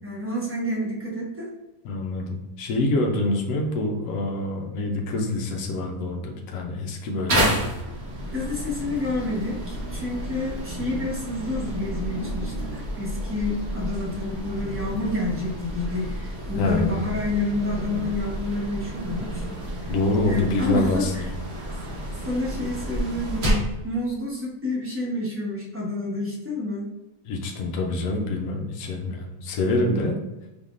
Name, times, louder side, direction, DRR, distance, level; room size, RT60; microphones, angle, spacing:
voice 1, 0.0-1.5 8.3-19.4 19.8-19.9 20.3-21.2 22.2-26.9, left 2 dB, 15° right, -4 dB, 0.6 m, -29 dB
voice 2, 1.8-7.5 16.6-17.0 19.9-21.1 27.3-30.2, left 2 dB, 65° left, 1 dB, 1.0 m, -26 dB
sound 1, 7.3-23.8, right 1 dB, 45° right, 1.4 m, -30 dB
4.4 x 3.6 x 2.5 m, 1.0 s
omnidirectional pair, 1.7 m